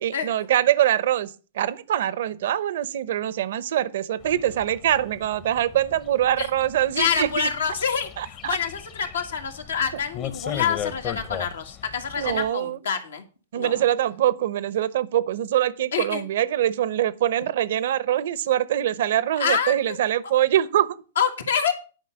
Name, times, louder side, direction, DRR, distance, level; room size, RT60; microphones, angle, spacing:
voice 1, 0.0-7.3 8.2-8.6 12.2-12.8 13.5-21.0, right 12 dB, 65° right, 0.8 m, -23 dB
sound 1, 4.2-12.5, left 9 dB, 35° left, 1.0 m, -38 dB
voice 2, 7.0-13.2 13.5-13.9 15.9-16.2 19.4-20.0 21.2-21.7, left 7 dB, 80° left, 2.0 m, -26 dB
10.5 x 5.4 x 7.8 m
hypercardioid pair, 120°, 0 cm